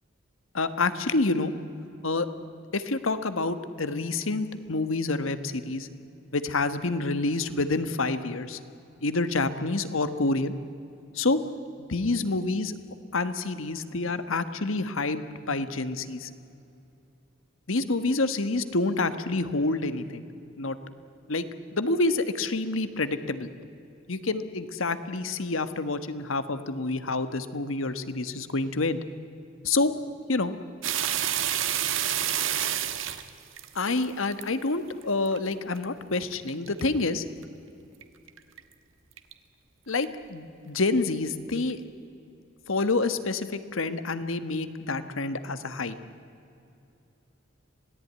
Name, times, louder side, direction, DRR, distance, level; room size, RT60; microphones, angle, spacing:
voice 1, 0.5-1.5 2.0-2.3 2.7-5.9 6.3-8.6 9.0-10.5 11.1-11.4 11.8-12.7 13.1-16.3 17.7-20.3 20.6-20.8 21.3-21.4 21.7-23.5 24.1-29.0 29.6-29.9 30.3-30.5 33.7-37.2 39.9-41.8 42.7-46.0, left 3 dB, 90° left, 11 dB, 1.4 m, -28 dB
sound 1, 30.8-34.5 35.0-35.4 35.8-35.9 36.3-36.9 37.4-37.5 38.0-38.1 38.3-38.6 39.2-39.3 40.0-40.1, right 10 dB, 80° right, 1.5 m, -28 dB
26.5 x 18.0 x 9.5 m, 2.7 s
head